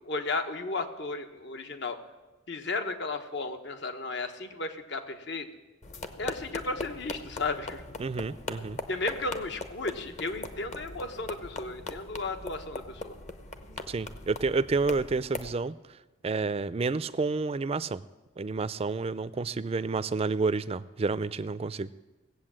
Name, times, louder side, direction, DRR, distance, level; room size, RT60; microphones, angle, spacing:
voice 1, 0.0-2.0 2.5-5.4 6.2-7.8 8.9-13.1, left 3 dB, 65° left, 7 dB, 1.2 m, -34 dB
sound 1, 5.8-15.5, left 2 dB, 40° left, 0.9 m, -40 dB
voice 2, 8.0-8.8 13.9-15.8 16.2-18.0 18.4-21.9, right 4 dB, 30° right, 16 dB, 0.4 m, -29 dB
18.0 x 8.2 x 7.5 m, 1.2 s
head